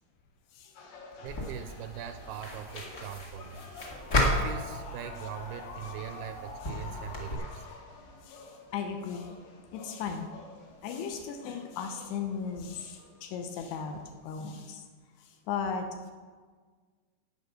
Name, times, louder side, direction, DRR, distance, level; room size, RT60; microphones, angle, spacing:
sound 1, 0.8-13.3 13.8-14.0 14.5-14.6, left 3 dB, 65° left, 3.2 m, -48 dB
voice 1, 1.2-3.7 4.3-7.7, right 10 dB, 80° right, 8 dB, 2.2 m, -41 dB
sound 2, 1.3-7.3, left 1 dB, 40° left, 1.4 m, -34 dB
voice 2, 8.2-9.3 9.7-10.3 10.8-14.9 15.2-16.1, left 6 dB, 80° left, 4 dB, 3.0 m, -36 dB
11.0 x 9.1 x 6.3 m, 1.5 s
omnidirectional pair, 4.7 m